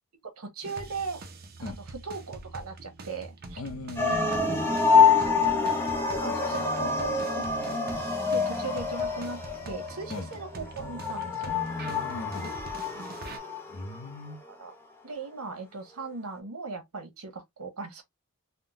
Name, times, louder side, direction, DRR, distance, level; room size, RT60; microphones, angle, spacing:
voice 1, 0.4-1.2 1.6-3.6 5.1-5.7 6.2-7.5 8.3-11.5 12.9-13.2 14.5-14.7 15.0-18.0, right 4 dB, 75° right, 1.0 m, -38 dB
sound 1, 0.6-13.4, right 2 dB, 45° right, 0.6 m, -44 dB
voice 2, 3.6-4.7 10.1-10.3 11.5-12.6 13.7-14.4, left 2 dB, 75° left, 0.7 m, -38 dB
sound 2, 4.0-14.1, left 5 dB, 10° left, 0.6 m, -26 dB
3.6 x 2.2 x 2.5 m
head